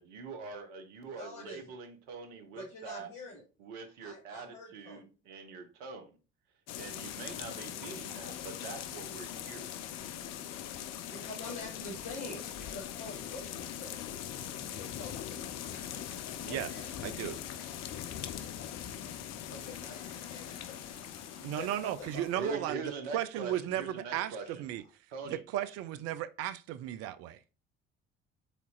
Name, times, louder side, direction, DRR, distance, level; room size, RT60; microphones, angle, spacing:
voice 1, 0.0-3.1 3.6-6.2 6.8-9.7 22.3-24.4 25.1-25.4, right 4 dB, 65° right, 1.1 m, -43 dB
voice 2, 1.1-1.7 2.5-3.4 4.0-5.1 10.5-14.0 14.6-15.4 16.3-17.1 19.5-20.8 21.3-22.6, left 2 dB, 60° left, 2.3 m, -47 dB
sound 1, 6.7-22.4, left 10 dB, 45° left, 0.6 m, -41 dB
sound 2, 14.6-15.0 15.2-19.2 19.6-24.1 24.4-24.9, equal, 90° left, 1.8 m, -60 dB
voice 3, 17.0-17.4 21.4-22.8 23.1-24.8 25.2-27.4, right 12 dB, 45° right, 0.4 m, -35 dB
4.9 x 4.0 x 2.4 m
figure-of-eight pair, 55°, 37 cm